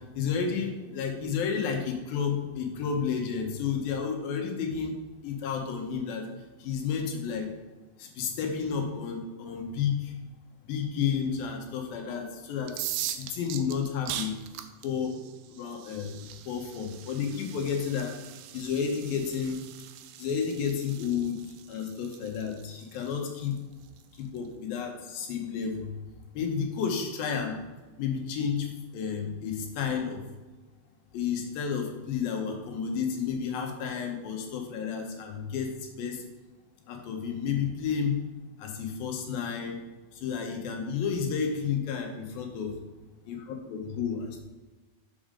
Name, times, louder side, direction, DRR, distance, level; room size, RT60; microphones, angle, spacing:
voice 1, 0.2-6.3 6.6-7.5 8.0-10.1 10.7-12.7 13.2-14.3 14.8-15.1 15.5-18.1 18.5-19.6 20.2-21.4 21.7-23.5 24.2-26.0 26.3-27.6 28.0-28.7 28.9-30.2 31.1-35.7 36.0-36.2 36.9-38.1 38.6-39.8 40.2-42.7 43.3-44.4, left 6 dB, 80° left, 2 dB, 2.8 m, -31 dB
sound 1, 12.6-24.4, right 11 dB, 90° right, 2.4 m, -41 dB
7.0 x 6.2 x 3.7 m, 1.2 s
omnidirectional pair, 4.1 m